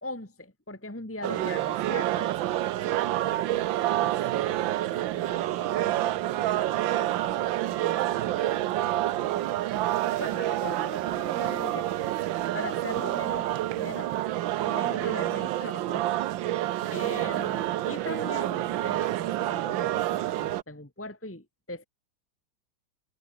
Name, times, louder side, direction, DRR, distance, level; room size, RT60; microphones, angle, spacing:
voice 1, 0.0-2.3 10.2-11.9 12.5-13.5 13.7-14.2 14.7-16.1 16.9-21.9, left 2 dB, 5° left, 2.0 m, -39 dB
sound 1, 1.2-20.6, right 14 dB, 75° right, 1.5 m, -28 dB
voice 2, 3.1-3.7 4.0-9.7 16.7-17.5, right 1 dB, 45° right, 7.9 m, -49 dB
omnidirectional pair, 2.2 m